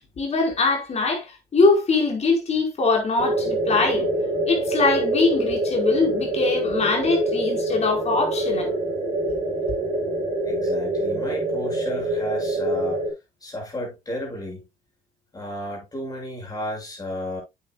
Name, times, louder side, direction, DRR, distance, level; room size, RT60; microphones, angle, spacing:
voice 1, 0.2-4.1 4.5-8.8, left 3 dB, 40° left, 4.8 m, -22 dB
sound 1, 3.2-13.1, right 1 dB, 40° right, 5.4 m, -25 dB
voice 2, 10.4-13.0 13.4-14.7 15.3-17.4, left 1 dB, 20° left, 7.0 m, -33 dB
10.0 x 8.8 x 2.4 m
cardioid pair, 110°, 17 cm